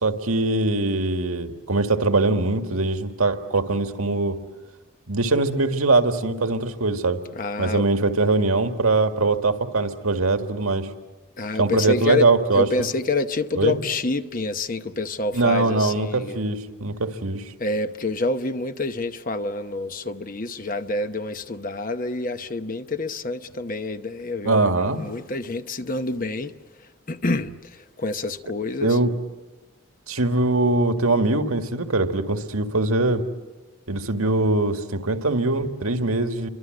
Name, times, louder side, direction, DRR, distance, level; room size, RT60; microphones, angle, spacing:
voice 1, 0.0-4.4 5.1-7.2 7.6-10.9 11.6-12.9 13.5-13.8 15.3-17.5 24.4-25.0 28.8-29.1 30.1-33.2 33.9-36.5, right 2 dB, 90° right, 1.8 m, -22 dB
voice 2, 7.4-7.8 11.4-12.3 12.5-16.4 17.6-26.5 27.1-29.0, left 3 dB, 40° left, 0.9 m, -27 dB
29.5 x 24.5 x 7.8 m
head